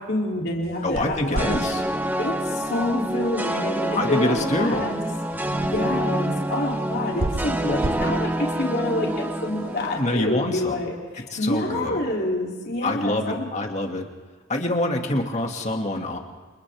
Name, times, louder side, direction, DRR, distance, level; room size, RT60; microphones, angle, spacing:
voice 1, 0.0-1.5 2.2-5.0 5.6-13.5, left 1 dB, 50° left, -2 dB, 3.2 m, -27 dB
sound 1, 0.6-10.0, right 2 dB, 80° right, 1.0 m, -36 dB
voice 2, 0.8-1.8 3.9-4.9 9.9-10.8 11.3-12.0 12.8-14.1 14.5-16.2, left 1 dB, 35° left, 2 dB, 2.3 m, -25 dB
sound 2, 1.4-10.7, right 1 dB, 10° right, 0.8 m, -27 dB
29.0 x 28.5 x 3.6 m, 1.4 s
head